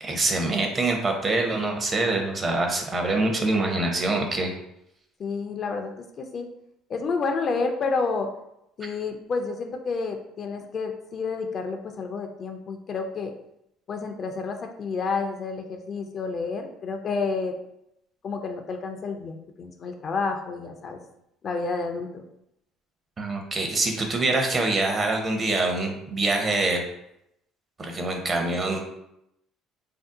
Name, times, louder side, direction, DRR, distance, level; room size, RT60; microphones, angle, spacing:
voice 1, 0.0-4.5 23.2-26.8 27.8-28.8, right 2 dB, 30° right, 2 dB, 0.6 m, -25 dB
voice 2, 5.2-6.5 6.9-8.3 8.8-13.3 13.9-17.5 18.2-21.0 21.4-22.2, left 4 dB, 45° left, 5 dB, 0.4 m, -30 dB
2.6 x 2.0 x 3.6 m, 0.81 s
supercardioid pair, 90°, 0 cm